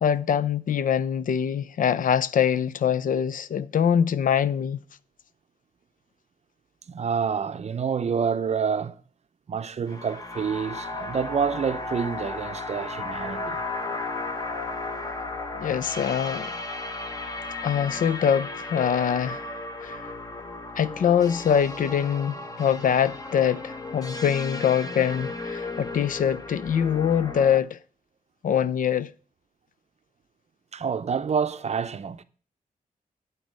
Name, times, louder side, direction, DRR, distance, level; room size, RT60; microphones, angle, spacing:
voice 1, 0.0-4.8 15.6-16.6 17.6-20.1 20.8-27.8 28.4-29.1, left 8 dB, 65° left, 0.4 m, -24 dB
voice 2, 6.9-9.0 9.5-13.6 30.7-32.2, right 6 dB, 50° right, 0.6 m, -28 dB
sound 1, 9.9-27.6, left 2 dB, 25° left, 1.0 m, -35 dB
9.8 x 4.1 x 6.3 m
cardioid pair, 85°, 15 cm